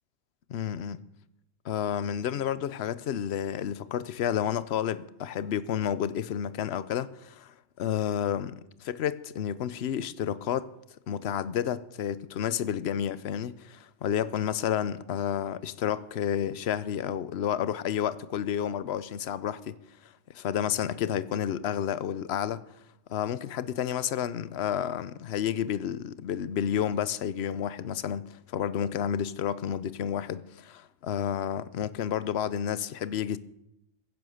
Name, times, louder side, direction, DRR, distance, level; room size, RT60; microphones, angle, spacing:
voice 1, 0.5-1.0 1.6-10.7 11.1-19.8 20.0-22.6 23.1-33.4, left 9 dB, 70° left, 0.9 m, -30 dB
15.5 x 10.5 x 6.4 m
omnidirectional pair, 1.2 m